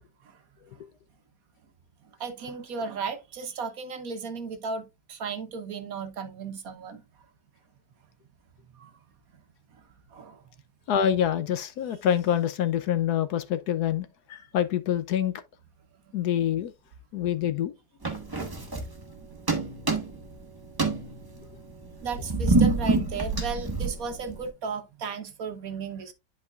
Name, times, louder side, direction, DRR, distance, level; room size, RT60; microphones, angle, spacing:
voice 1, 2.2-4.8 5.1-7.0 8.7-8.9 9.7-9.8 10.1-10.4 16.1-16.2 22.0-26.1, right 5 dB, 60° right, 1.3 m, -35 dB
voice 2, 10.9-15.3 16.1-16.7 17.1-17.7, left 10 dB, 70° left, 1.1 m, -26 dB
sound 1, 18.0-19.2 19.5-20.4 20.7-24.5, right 3 dB, 15° right, 1.1 m, -26 dB
10.5 x 4.9 x 2.3 m
omnidirectional pair, 1.9 m